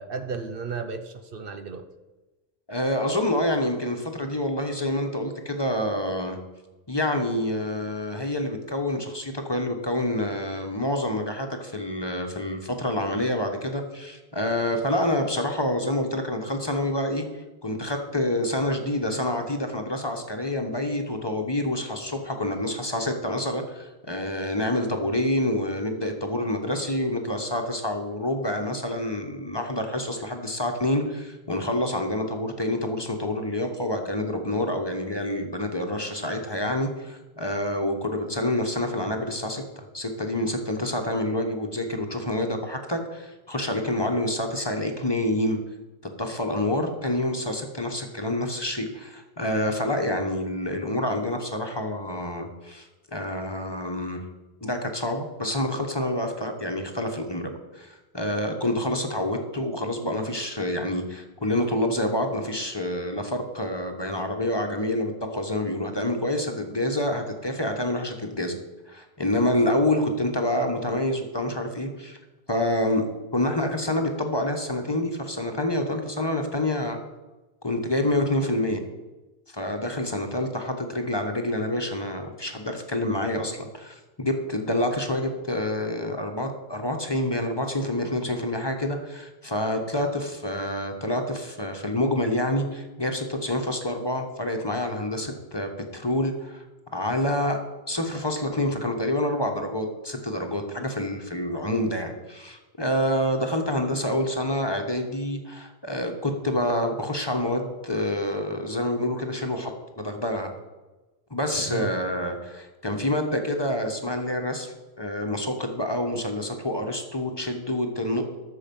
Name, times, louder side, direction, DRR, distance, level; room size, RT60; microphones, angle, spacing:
voice 1, 0.0-1.9 80.2-80.3 111.7-111.9 115.3-115.5, right 5 dB, 60° right, 9 dB, 0.9 m, -34 dB
voice 2, 2.7-6.4 6.9-45.6 46.2-54.2 54.6-68.6 68.9-72.2 72.5-77.0 77.6-78.8 79.5-96.6 96.9-97.6 97.9-109.7 110.0-110.5 111.3-118.4, left 1 dB, 25° left, 4 dB, 1.2 m, -27 dB
13.0 x 7.0 x 5.4 m, 1.1 s
omnidirectional pair, 1.0 m